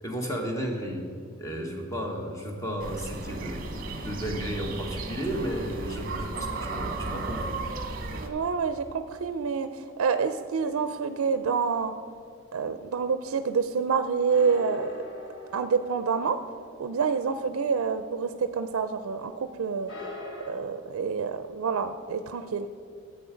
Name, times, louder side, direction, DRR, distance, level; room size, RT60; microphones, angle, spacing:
voice 1, 0.0-1.1 1.4-7.6, equal, 15° left, 1 dB, 1.3 m, -33 dB
sound 1, 2.8-8.3, right 3 dB, 40° right, 1.0 m, -35 dB
voice 2, 8.1-11.9 12.5-14.9 15.5-16.4 16.8-19.9 20.5-22.7, right 5 dB, 85° right, 9 dB, 0.4 m, -27 dB
sound 2, 10.7-12.2 14.3-18.4 18.7-18.8 19.9-20.5, left 1 dB, 60° left, 1.8 m, -44 dB
11.0 x 7.9 x 5.1 m, 2.4 s
head